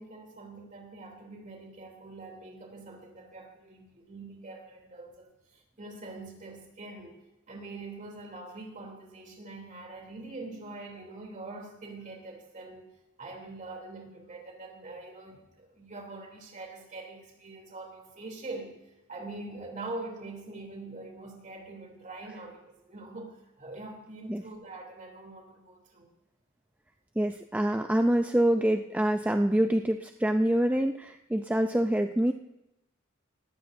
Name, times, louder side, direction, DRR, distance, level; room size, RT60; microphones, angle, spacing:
voice 1, 0.0-7.2 7.5-12.9 13.2-18.8 19.1-26.1, right 2 dB, 40° right, 0 dB, 3.0 m, -44 dB
voice 2, 27.2-32.3, right 1 dB, 5° right, 6 dB, 0.4 m, -26 dB
19.0 x 14.5 x 2.6 m, 0.93 s
head